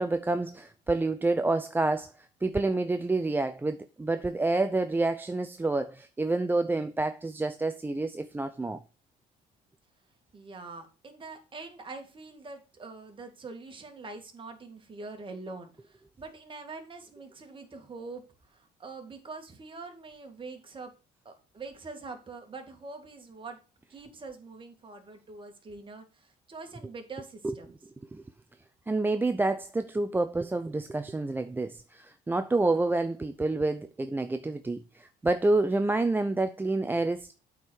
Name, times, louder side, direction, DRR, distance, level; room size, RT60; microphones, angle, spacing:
voice 1, 0.0-2.1 2.4-8.8 27.4-27.5 28.1-28.2 28.9-37.3, right 2 dB, 10° right, 0.5 m, -28 dB
voice 2, 10.3-18.2 18.5-20.9 21.3-23.6 23.9-27.7, right 3 dB, 30° right, 2.1 m, -44 dB
8.2 x 4.5 x 6.4 m
cardioid pair, 110°, 17 cm